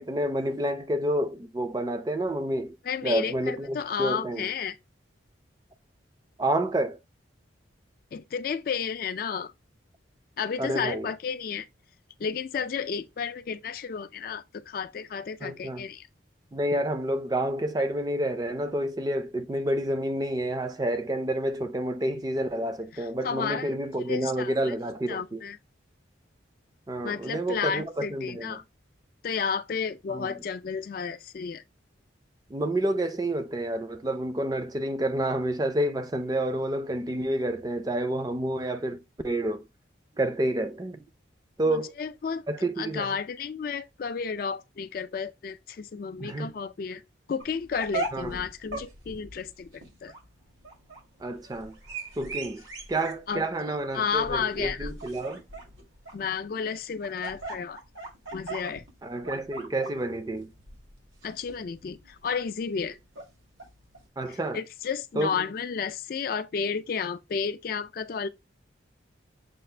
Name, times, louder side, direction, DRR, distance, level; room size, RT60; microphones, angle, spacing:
voice 1, 0.0-2.8 3.0-4.5 6.4-7.0 10.6-11.1 15.4-15.9 16.5-25.4 26.9-28.6 30.1-30.3 32.5-39.6 40.2-41.0 41.6-41.9 42.5-43.1 46.2-46.5 48.1-48.4 51.2-51.8 52.2-52.6 52.9-55.4 59.0-60.5 64.2-64.6 65.2-65.5, right 1 dB, 20° right, 0.4 m, -29 dB
voice 2, 2.8-4.8 8.1-9.5 10.4-11.7 12.2-16.1 22.9-23.7 24.0-24.7 25.1-25.6 27.0-28.6 29.2-31.6 41.6-42.4 42.8-47.0 47.3-50.1 53.3-54.9 56.1-57.8 58.3-58.8 61.2-63.0 64.3-68.3, left 6 dB, 50° left, 0.3 m, -32 dB
sound 1, 47.4-64.0, right 2 dB, 90° right, 1.9 m, -40 dB
6.7 x 2.4 x 3.2 m
head